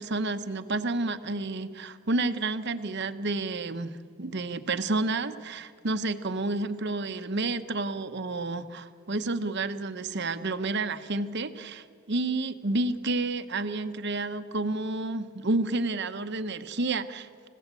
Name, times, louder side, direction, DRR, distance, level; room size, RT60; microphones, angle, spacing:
voice 1, 0.0-17.5, right 2 dB, 50° right, 10 dB, 0.9 m, -30 dB
28.0 x 16.0 x 8.3 m, 2.1 s
head